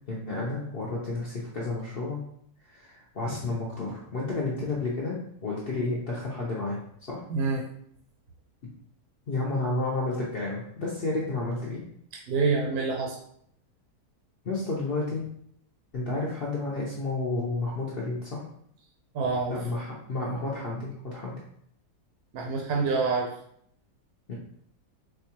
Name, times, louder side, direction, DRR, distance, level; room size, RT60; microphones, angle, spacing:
voice 1, 0.1-2.2 2.7-6.8 7.1-7.2 9.3-11.8 14.4-15.3 15.9-18.4 19.5-21.4 24.3-24.4, left 2 dB, 70° left, -4 dB, 0.5 m, -31 dB
voice 2, 7.3-7.6 12.3-13.2 19.1-19.6 22.3-23.3, right 4 dB, 70° right, -1 dB, 1.0 m, -26 dB
4.3 x 2.2 x 2.8 m, 0.68 s
omnidirectional pair, 1.7 m